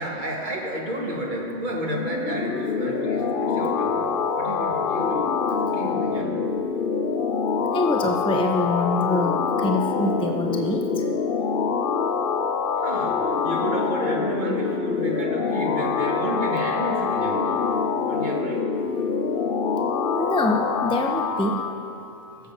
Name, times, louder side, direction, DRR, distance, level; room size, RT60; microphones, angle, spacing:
voice 1, 0.0-4.1 4.4-6.4 12.8-17.7 18.0-18.6, right 1 dB, 40° right, -1 dB, 1.8 m, -31 dB
sound 1, 1.8-21.7, left 5 dB, 55° left, 0.8 m, -25 dB
voice 2, 7.7-11.0 20.1-21.6, left 1 dB, 5° left, 2 dB, 0.5 m, -25 dB
17.0 x 7.6 x 5.5 m, 2.9 s
omnidirectional pair, 1.2 m